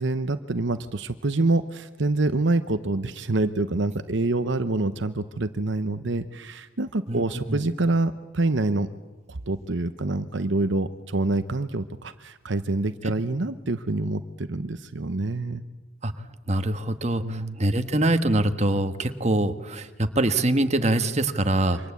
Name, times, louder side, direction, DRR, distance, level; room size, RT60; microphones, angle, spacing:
voice 1, 0.0-8.9 9.3-15.6 17.2-17.6, right 2 dB, 65° right, 11 dB, 0.9 m, -26 dB
voice 2, 16.5-21.8, right 1 dB, 35° right, 8 dB, 1.4 m, -24 dB
28.0 x 25.0 x 8.4 m, 1.2 s
head